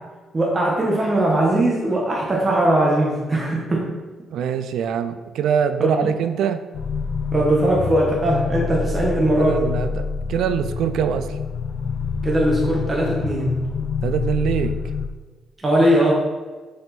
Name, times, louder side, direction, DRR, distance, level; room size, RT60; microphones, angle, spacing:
voice 1, 0.3-3.9 5.8-6.0 7.3-9.6 12.2-13.6 15.6-16.1, right 1 dB, 25° right, -3 dB, 1.4 m, -19 dB
voice 2, 4.3-6.6 9.4-11.4 14.0-14.8, right 8 dB, 75° right, 10 dB, 0.4 m, -23 dB
sound 1, 6.7-15.1, left 5 dB, 60° left, 0.5 m, -27 dB
6.0 x 5.2 x 4.3 m, 1.3 s
cardioid pair, 90°, 0 cm